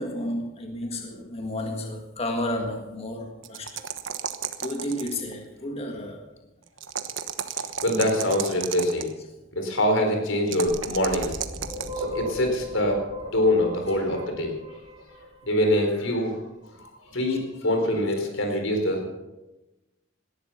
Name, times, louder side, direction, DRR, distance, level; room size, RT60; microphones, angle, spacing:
voice 1, 0.0-3.8 4.6-6.3 11.7-11.8, left 1 dB, 30° left, 3 dB, 1.7 m, -32 dB
sound 1, 3.4-5.3 6.8-9.1 10.5-12.0, right 8 dB, 75° right, 1.2 m, -32 dB
voice 2, 7.8-9.1 9.5-11.3 12.0-13.0 13.3-14.5 15.5-16.4 16.8-19.1, left 1 dB, 85° left, 4 dB, 4.3 m, -24 dB
sound 2, 10.7-15.5, left 1 dB, 25° right, 4.9 m, -36 dB
18.0 x 12.5 x 5.7 m, 1.0 s
head